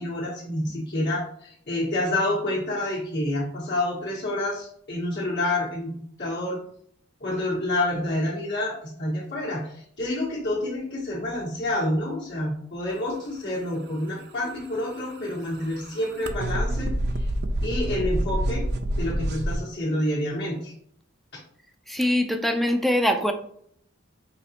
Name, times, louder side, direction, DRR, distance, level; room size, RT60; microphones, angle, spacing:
voice 1, 0.0-5.9 6.2-6.6 7.2-16.9 17.2-17.3 17.6-18.6 18.9-20.7, left 1 dB, 55° left, -7 dB, 1.2 m, -28 dB
sound 1, 14.4-19.6, right 1 dB, 55° right, 0.5 m, -28 dB
voice 2, 21.9-23.3, left 1 dB, ahead, 6 dB, 0.4 m, -23 dB
4.9 x 2.9 x 2.8 m, 0.66 s
head